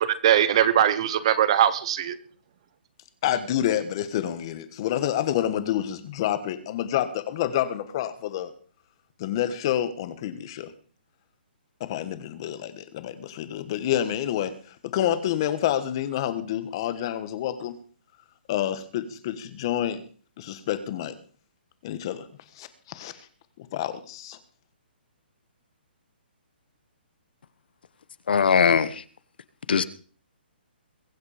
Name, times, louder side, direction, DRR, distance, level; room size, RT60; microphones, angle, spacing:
voice 1, 0.0-2.2, right 10 dB, 30° right, 1.0 m, -21 dB
voice 2, 3.2-8.5 9.2-10.7 11.8-17.7 18.5-20.0 20.4-21.1 21.8-22.3 22.6-23.1 23.6-24.4, left 11 dB, 25° left, 1.4 m, -28 dB
voice 3, 28.3-29.0 29.7-29.8, left 6 dB, 60° left, 1.2 m, -20 dB
22.5 x 8.4 x 5.1 m
hypercardioid pair, 175°, 6 cm